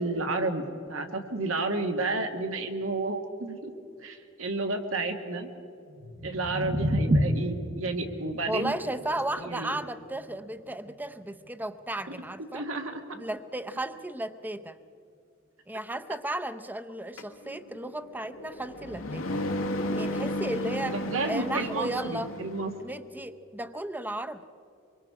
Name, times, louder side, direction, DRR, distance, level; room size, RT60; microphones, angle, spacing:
voice 1, 0.0-3.7 4.0-5.5 6.2-8.7 9.5-9.8 12.5-13.0 20.9-22.7, right 2 dB, 85° right, 5 dB, 1.8 m, -31 dB
sound 1, 5.9-12.0, equal, 50° right, 1.2 m, -31 dB
voice 2, 8.5-12.7 13.1-14.8 15.7-19.4 19.9-22.3 22.8-24.4, right 1 dB, 10° right, 10 dB, 0.6 m, -34 dB
sound 2, 17.2-22.8, left 1 dB, 90° left, 1.6 m, -34 dB
25.0 x 23.5 x 4.8 m, 2.6 s
head